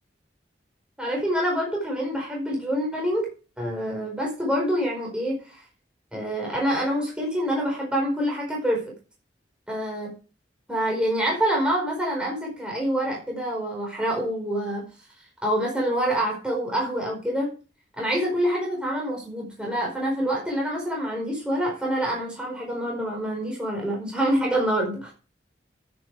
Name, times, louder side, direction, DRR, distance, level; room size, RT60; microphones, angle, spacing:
voice 1, 1.0-3.3 3.6-5.6 6.1-8.9 9.7-10.1 10.7-14.9 15.4-17.5 18.0-25.1, equal, 5° right, -1 dB, 4.7 m, -26 dB
10.0 x 10.0 x 4.8 m, 0.34 s
head